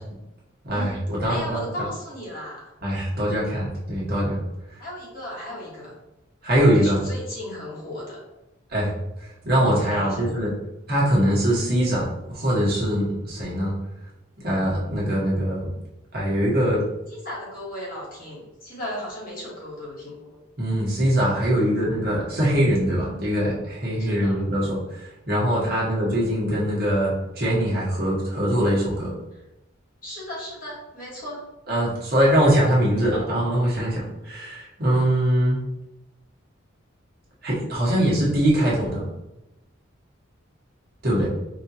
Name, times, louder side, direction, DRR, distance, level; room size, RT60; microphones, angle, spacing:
voice 1, 0.6-1.6 2.8-4.4 4.7-4.8 6.4-7.0 8.7-10.5 10.9-13.7 14.4-15.7 16.1-16.8 20.6-29.1 31.7-35.6 37.4-39.0 41.0-41.3, equal, 50° right, -6 dB, 1.4 m, -22 dB
voice 2, 1.3-2.7 4.8-5.9 6.5-8.2 9.8-10.3 17.1-20.4 24.0-24.4 25.6-25.9 30.0-31.4, left 1 dB, 45° left, -5 dB, 1.4 m, -36 dB
5.2 x 2.5 x 2.8 m, 0.94 s
head